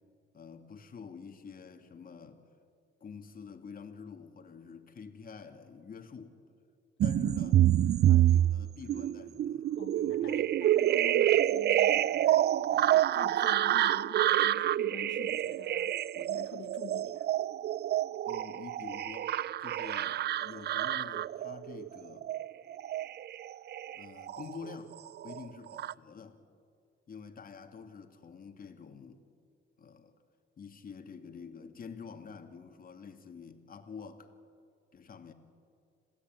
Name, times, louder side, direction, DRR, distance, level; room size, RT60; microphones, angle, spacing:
voice 1, 0.3-2.5 3.0-6.4 7.0-7.6 8.1-10.4 18.3-22.3 23.9-25.0 25.2-26.4 27.1-29.2 29.8-30.2 30.6-34.3 34.9-35.3, left 6 dB, 45° left, 6 dB, 2.6 m, -47 dB
sound 1, 7.0-24.8 25.1-25.9, right 12 dB, 55° right, 0.5 m, -28 dB
voice 2, 9.8-17.3, left 9 dB, 65° left, 6 dB, 1.1 m, -48 dB
27.0 x 16.5 x 9.4 m, 2.4 s
cardioid pair, 90°, 20 cm